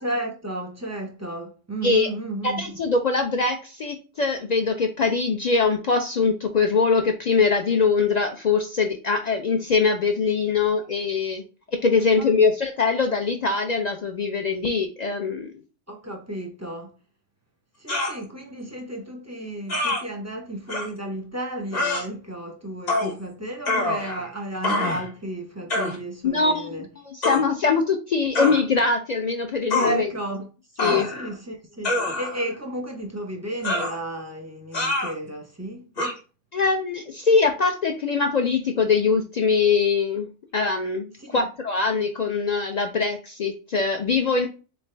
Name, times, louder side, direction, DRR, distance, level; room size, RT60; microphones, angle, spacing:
voice 1, 0.0-2.8 12.0-12.3 15.9-16.9 17.8-26.9 29.8-30.5 30.7-35.9 41.2-41.4, right 1 dB, 20° right, 0.4 m, -33 dB
voice 2, 2.4-11.4 11.8-15.5 26.2-26.7 27.0-30.1 30.8-31.1 36.5-40.3 40.5-44.5, left 4 dB, 70° left, 0.4 m, -22 dB
sound 1, 17.9-18.2 19.7-20.0 20.7-20.9 21.7-22.0 22.9-23.1 23.6-24.3 24.6-25.1 25.7-26.0 27.2-27.4 28.3-28.6 29.7-29.9 30.8-31.3 31.8-32.5 33.6-34.0 34.7-35.1 36.0-36.1, left 2 dB, 40° left, 0.9 m, -25 dB
4.0 x 3.5 x 3.2 m
omnidirectional pair, 1.3 m